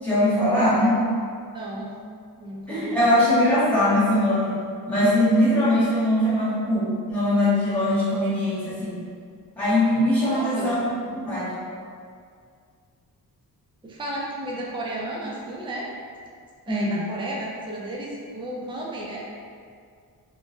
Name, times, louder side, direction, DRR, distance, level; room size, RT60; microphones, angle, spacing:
voice 1, 0.0-1.0 2.7-4.5 4.9-9.0 9.6-10.7 11.1-11.6 16.7-17.0, left 1 dB, 5° left, -12 dB, 1.4 m, -21 dB
voice 2, 1.5-1.9 2.4-3.2 10.2-10.7 13.8-15.9 16.7-19.3, right 1 dB, 15° right, -4 dB, 0.4 m, -33 dB
2.9 x 2.2 x 2.6 m, 2.2 s
cardioid pair, 85°, 38 cm